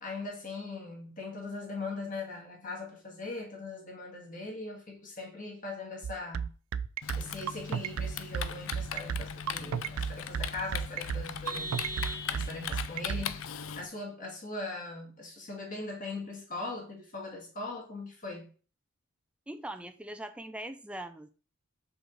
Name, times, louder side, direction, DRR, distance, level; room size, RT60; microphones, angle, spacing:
voice 1, 0.0-6.5 7.2-11.7 12.3-13.4 13.8-18.5, left 3 dB, 35° left, 1.9 m, -40 dB
sound 1, 6.0-13.2, right 7 dB, 80° right, 0.4 m, -32 dB
Typing, 7.0-13.9, left 7 dB, 70° left, 0.5 m, -39 dB
Vehicle horn car horn honking, 11.4-12.8, right 1 dB, 15° left, 1.8 m, -40 dB
voice 2, 19.5-21.3, right 1 dB, 5° right, 0.3 m, -41 dB
6.3 x 5.0 x 3.9 m
head